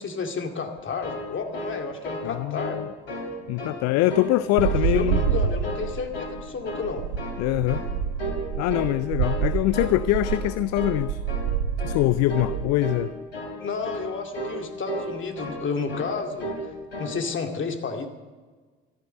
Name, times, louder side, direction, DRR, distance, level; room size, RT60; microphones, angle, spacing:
voice 1, 0.0-2.8 4.5-7.0 13.6-16.5 17.0-18.1, left 5 dB, 40° left, 4 dB, 2.3 m, -31 dB
sound 1, 0.8-2.3 2.6-2.8 3.1-3.8 4.1-4.8 5.1-5.9 6.1-6.4 6.6-7.4 7.7-7.9 8.2-8.4 8.7-9.4 9.7-10.0 10.2-10.5 10.7-11.0 11.3-11.5 11.8-12.0 12.3-12.5 12.8-13.0 13.3-13.5 13.8-14.1 14.3-14.6 14.9-15.6 15.9-16.1 16.4-16.6 16.9-17.2, equal, 85° left, 3.4 m, -33 dB
voice 2, 2.2-2.8 3.5-5.2 7.4-7.8 8.6-11.2 11.8-13.1, left 17 dB, 55° left, 16 dB, 0.5 m, -23 dB
sound 2, 4.6-12.7, right 8 dB, 75° right, 1.0 m, -28 dB
14.0 x 11.0 x 7.6 m, 1.4 s
figure-of-eight pair, 55°, 31 cm